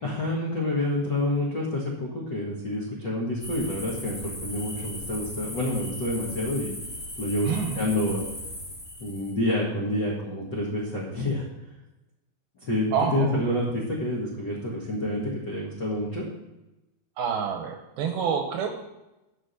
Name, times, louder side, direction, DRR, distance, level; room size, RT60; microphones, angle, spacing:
voice 1, 0.0-6.7 7.2-8.3 9.0-11.4 12.6-12.8 13.1-16.2, left 1 dB, 85° left, -4 dB, 0.9 m, -28 dB
sound 1, 3.4-9.3, left 1 dB, 40° left, 0.8 m, -38 dB
voice 2, 7.4-7.8 12.9-13.4 17.2-18.7, right 7 dB, 75° right, 4 dB, 2.4 m, -27 dB
11.0 x 5.0 x 7.0 m, 0.98 s
omnidirectional pair, 5.2 m